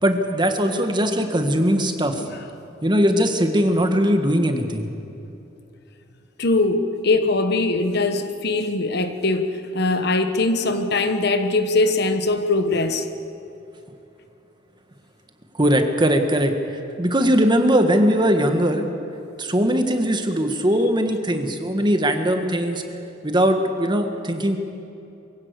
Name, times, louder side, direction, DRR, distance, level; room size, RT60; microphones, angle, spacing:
voice 1, 0.0-2.2 2.8-4.9 15.6-16.5 17.0-18.9 19.4-22.8 23.2-24.6, equal, 25° right, 1.5 m, -20 dB
voice 2, 6.4-13.1, left 2 dB, 60° left, 1.2 m, -21 dB
23.5 x 16.0 x 8.2 m
head